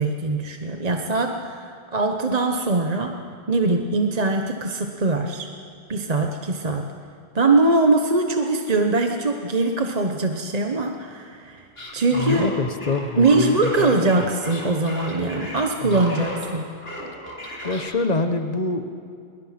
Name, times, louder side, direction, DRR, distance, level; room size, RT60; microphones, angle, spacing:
voice 1, 0.0-3.2 3.5-5.5 5.9-6.9 7.3-11.7 11.9-12.5 13.2-16.7, right 2 dB, 35° right, 4 dB, 1.1 m, -22 dB
sound 1, 11.8-16.5 16.8-17.8, equal, 55° left, 4.3 m, -34 dB
voice 2, 12.1-14.2 15.8-16.1 17.6-18.9, left 3 dB, 35° left, 8 dB, 1.2 m, -25 dB
23.5 x 23.0 x 5.9 m, 2.4 s
omnidirectional pair, 1.2 m